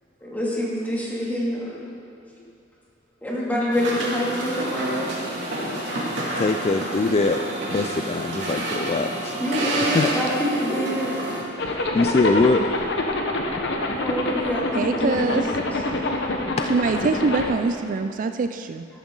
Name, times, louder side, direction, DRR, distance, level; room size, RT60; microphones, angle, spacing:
voice 1, 0.2-1.8 3.2-5.1 9.4-11.3 13.9-15.4, equal, 10° left, -6 dB, 2.7 m, -26 dB
sound 1, 3.7-11.4, right 1 dB, 70° right, 2.6 m, -29 dB
voice 2, 6.4-7.4 7.7-9.4 9.8-10.1 11.7-12.6, left 3 dB, 35° left, 6 dB, 0.4 m, -22 dB
Zipper (clothing), 11.6-17.5, left 2 dB, 70° left, 1.1 m, -26 dB
voice 3, 14.7-15.5 16.7-18.9, right 4 dB, 45° right, 8 dB, 0.4 m, -24 dB
13.0 x 12.5 x 3.9 m, 2.5 s
head